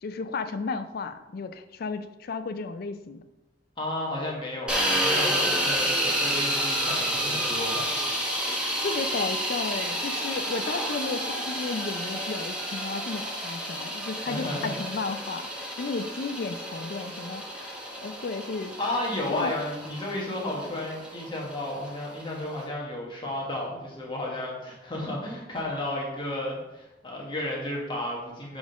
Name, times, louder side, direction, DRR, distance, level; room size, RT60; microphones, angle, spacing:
voice 1, 0.0-3.3 8.5-18.8 19.3-19.5, left 4 dB, 55° left, 10 dB, 0.4 m, -34 dB
voice 2, 3.8-8.0 14.3-14.9 18.8-28.6, left 1 dB, 25° left, -3 dB, 1.3 m, -33 dB
sound 1, 4.7-22.6, equal, 5° right, 1.0 m, -30 dB
6.2 x 3.6 x 5.1 m, 1.0 s
head